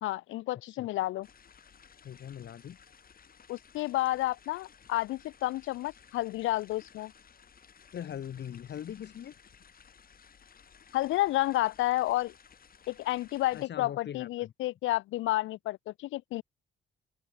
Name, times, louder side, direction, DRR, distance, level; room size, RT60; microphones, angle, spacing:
voice 1, 0.0-1.3 3.5-7.1 10.9-12.3 12.9-16.4, left 16 dB, 80° left, 0.5 m, -30 dB
sound 1, 1.2-13.7, left 7 dB, 45° left, 6.4 m, -58 dB
voice 2, 2.0-2.8 7.9-9.3 13.5-14.5, left 9 dB, 60° left, 3.2 m, -41 dB
open air
cardioid pair, 90°, 20 cm